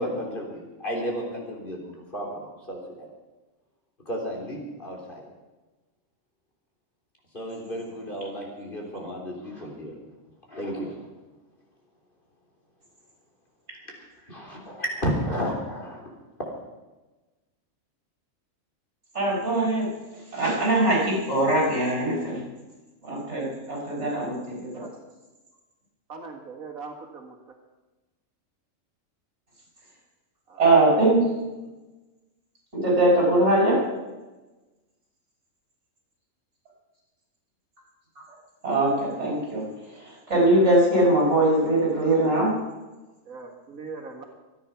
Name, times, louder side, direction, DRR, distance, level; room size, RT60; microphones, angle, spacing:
voice 1, 0.0-3.1 4.1-5.2 7.3-9.9 10.5-11.0 14.3-16.0, equal, 40° left, 0 dB, 3.6 m, -32 dB
voice 2, 19.1-19.9 20.3-22.4 23.0-24.8 30.6-31.2 32.7-33.9 38.6-42.6, right 1 dB, 55° right, -3 dB, 7.2 m, -22 dB
voice 3, 26.1-27.6 30.5-30.6 43.3-44.2, right 4 dB, 85° right, 3 dB, 2.3 m, -40 dB
25.0 x 9.7 x 5.8 m, 1.1 s
omnidirectional pair, 1.4 m